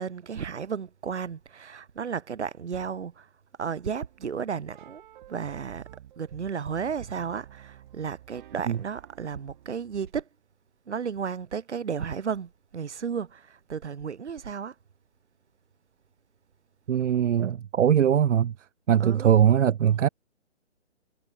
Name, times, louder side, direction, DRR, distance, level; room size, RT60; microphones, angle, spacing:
voice 1, 0.0-3.3 3.6-5.0 5.3-5.9 6.2-10.3 10.9-14.7 19.0-19.3, right 6 dB, 70° right, 2.6 m, -33 dB
sound 1, 3.6-10.1, right 12 dB, 40° right, 7.0 m, -51 dB
voice 2, 16.9-18.5 18.9-20.1, right 9 dB, 90° right, 0.6 m, -21 dB
hypercardioid pair, 150°, 36 cm